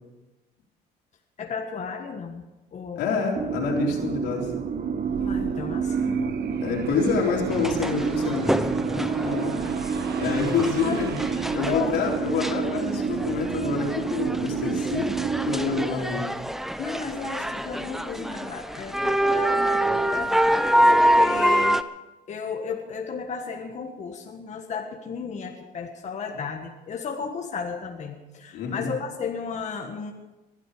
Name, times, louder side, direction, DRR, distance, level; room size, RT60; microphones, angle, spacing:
voice 1, 1.4-2.4 2.7-3.0 5.2-6.4 10.8-11.0 11.7-12.0 16.8-21.8 22.3-30.1, left 5 dB, 45° left, 2 dB, 1.7 m, -34 dB
voice 2, 3.0-4.5 6.6-8.6 9.0-11.2 11.5-15.1 15.4-16.3 28.5-28.9, left 5 dB, 85° left, 0 dB, 3.8 m, -27 dB
sound 1, 3.3-15.9, right 6 dB, 45° right, 1.1 m, -29 dB
sound 2, 5.0-12.2, right 8 dB, 70° right, 1.5 m, -40 dB
sound 3, 7.5-21.8, right 1 dB, ahead, 0.7 m, -26 dB
21.0 x 12.0 x 5.1 m, 1.1 s
cardioid pair, 110°, 17 cm